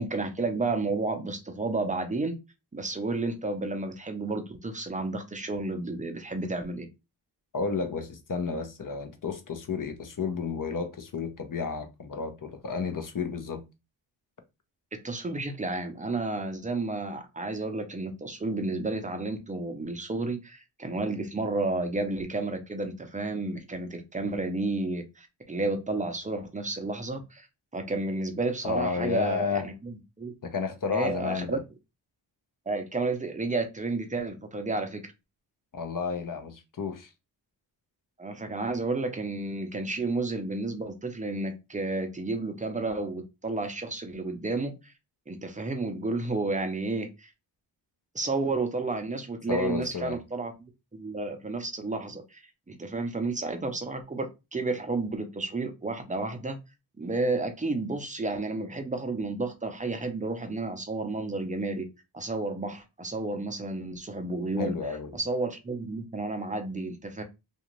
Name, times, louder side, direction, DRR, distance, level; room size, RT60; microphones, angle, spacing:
voice 1, 0.0-2.4 2.7-6.9 14.9-27.5 27.7-30.3 30.9-31.6 32.7-35.0 38.2-44.9 45.3-47.3 48.1-50.5 50.9-52.4 52.7-56.6 57.0-61.9 62.1-64.8 65.1-67.2, right 3 dB, 15° right, 0.6 m, -31 dB
voice 2, 7.5-13.6 28.6-29.7 30.4-31.6 35.7-37.1 49.5-50.2 64.6-65.2, left 5 dB, 45° left, 0.7 m, -31 dB
2.5 x 2.4 x 3.0 m
cardioid pair, 65°, 47 cm